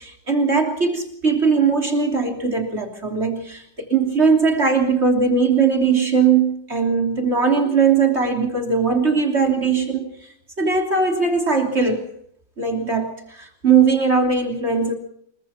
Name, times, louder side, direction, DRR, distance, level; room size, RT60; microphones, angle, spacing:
voice 1, 0.0-10.1 10.6-12.1 12.6-14.9, right 5 dB, 35° right, 3 dB, 3.4 m, -19 dB
26.5 x 23.0 x 4.3 m, 0.68 s
omnidirectional pair, 1.9 m